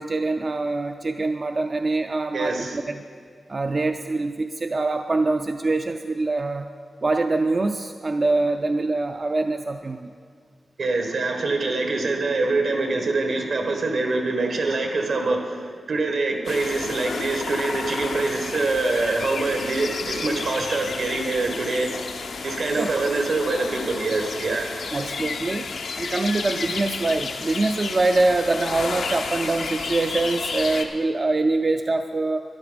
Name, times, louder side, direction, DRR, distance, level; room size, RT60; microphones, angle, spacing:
voice 1, 0.0-3.0 3.5-6.7 7.0-10.1 22.8-22.9 24.9-25.7 26.0-32.4, right 2 dB, 40° right, 6 dB, 0.4 m, -24 dB
voice 2, 2.3-2.8 10.8-21.9 22.4-24.7, right 3 dB, 75° right, 3 dB, 1.6 m, -24 dB
sound 1, 16.4-30.8, left 4 dB, 90° left, 0.9 m, -32 dB
13.0 x 11.0 x 5.1 m, 2.1 s
wide cardioid pair, 100°, 0 cm